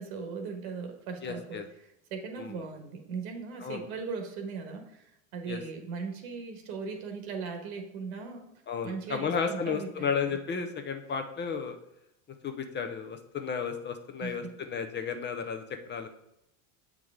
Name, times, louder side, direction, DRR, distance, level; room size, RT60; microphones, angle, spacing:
voice 1, 0.0-1.6 2.1-8.4 8.8-10.4 14.2-14.4, right 5 dB, 80° right, 4 dB, 1.5 m, -38 dB
voice 2, 1.2-1.6 2.4-2.6 3.6-3.9 5.5-5.6 8.7-11.8 12.4-16.1, left 6 dB, 25° left, 7 dB, 0.6 m, -33 dB
7.7 x 4.8 x 3.6 m, 0.82 s
supercardioid pair, 115°, 42 cm